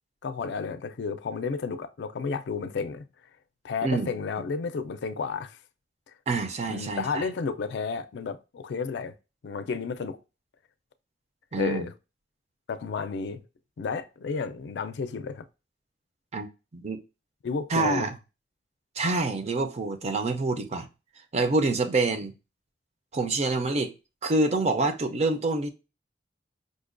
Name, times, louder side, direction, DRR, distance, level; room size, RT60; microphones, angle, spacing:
voice 1, 0.2-3.1 3.6-5.6 6.7-9.1 9.4-10.2 11.6-11.9 12.7-13.4 13.8-15.4 17.4-18.1, left 5 dB, 75° left, 0.4 m, -32 dB
voice 2, 6.3-7.3 11.5-11.9 16.3-16.5 16.7-17.0 17.7-18.1 19.0-20.9 21.3-22.3 23.1-23.9 24.2-25.7, right 3 dB, 40° right, 0.5 m, -26 dB
5.0 x 2.2 x 2.4 m
head